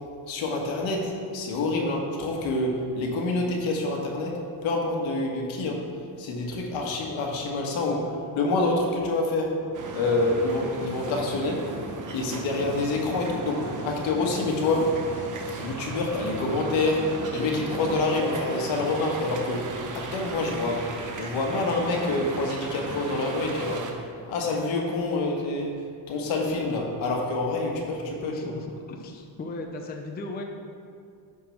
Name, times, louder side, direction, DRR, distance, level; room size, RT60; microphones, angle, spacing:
voice 1, 0.3-5.9 6.2-9.5 9.9-11.6 12.1-15.0 15.6-20.9 21.2-23.9 24.3-25.8 26.1-28.5, left 2 dB, 75° left, 0 dB, 1.6 m, -27 dB
sound 1, 9.7-23.9, right 3 dB, 40° right, 0.9 m, -36 dB
voice 2, 28.2-30.4, left 2 dB, 20° left, 3 dB, 0.5 m, -37 dB
9.8 x 3.9 x 5.8 m, 2.3 s
cardioid pair, 135°, 46 cm